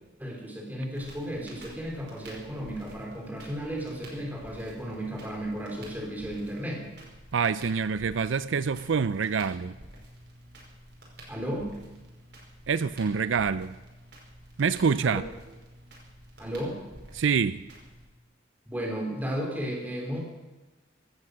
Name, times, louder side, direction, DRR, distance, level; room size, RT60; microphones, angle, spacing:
voice 1, 0.2-6.8 11.3-11.7 15.0-15.2 16.4-16.8 18.7-20.2, equal, 10° right, 0 dB, 3.5 m, -34 dB
Crackle, 0.9-18.0, right 1 dB, 60° right, 5.4 m, -49 dB
voice 2, 7.3-9.8 12.7-13.7 14.6-15.2 17.1-17.6, right 6 dB, 80° right, 15 dB, 0.5 m, -26 dB
16.5 x 12.0 x 6.3 m, 1.2 s
head